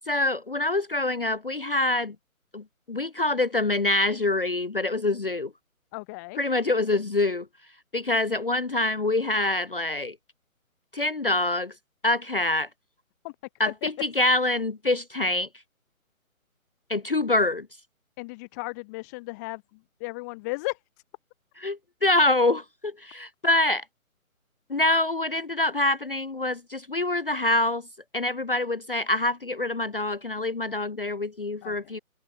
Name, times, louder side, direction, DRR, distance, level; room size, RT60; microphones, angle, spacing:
voice 1, 0.1-2.2 2.5-5.5 6.4-7.5 7.9-10.2 10.9-11.7 12.0-12.7 13.6-15.5 16.9-17.7 21.6-23.8 24.7-27.9 28.1-32.0, left 2 dB, 40° left, 0.5 m, -25 dB
voice 2, 5.9-6.4 13.2-13.3 13.7-13.9 18.2-20.8 31.6-31.9, left 26 dB, 10° left, 2.3 m, -35 dB
figure-of-eight pair, 165°, 42 cm